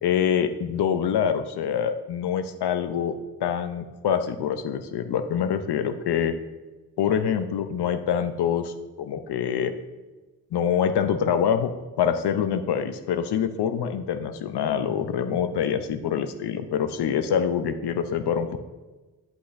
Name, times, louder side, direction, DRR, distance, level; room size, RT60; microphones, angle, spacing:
voice 1, 0.0-3.1 3.4-6.4 7.0-9.7 10.5-11.7 12.0-18.6, left 8 dB, 85° left, 9 dB, 0.6 m, -25 dB
8.2 x 8.1 x 2.6 m, 1.2 s
cardioid pair, 40°, 39 cm